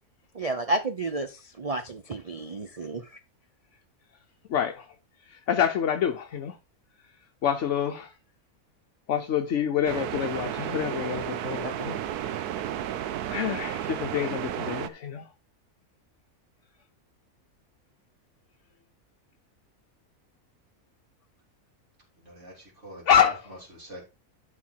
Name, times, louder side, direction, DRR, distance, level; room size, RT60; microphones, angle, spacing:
voice 1, 0.3-3.2, right 2 dB, 65° right, 0.3 m, -31 dB
voice 2, 4.5-4.8 5.3-6.5 7.4-8.1 9.1-12.0 13.3-15.2 23.1-23.4, left 9 dB, 60° left, 1.0 m, -26 dB
sound 1, 9.9-14.9, right 10 dB, 90° right, 1.2 m, -32 dB
voice 3, 22.2-24.0, equal, 50° right, 3.7 m, -44 dB
11.5 x 4.4 x 4.5 m
omnidirectional pair, 1.6 m